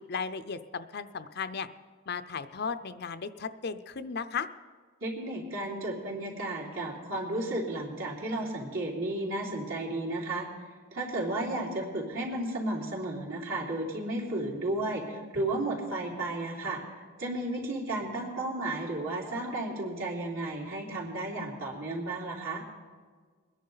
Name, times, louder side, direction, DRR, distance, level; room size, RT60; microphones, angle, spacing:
voice 1, 0.0-1.7 2.1-4.5, left 5 dB, 50° left, 11 dB, 0.5 m, -35 dB
voice 2, 5.0-10.5 10.9-22.6, right 2 dB, 65° right, -4 dB, 3.6 m, -33 dB
22.0 x 10.5 x 4.0 m, 1.5 s
head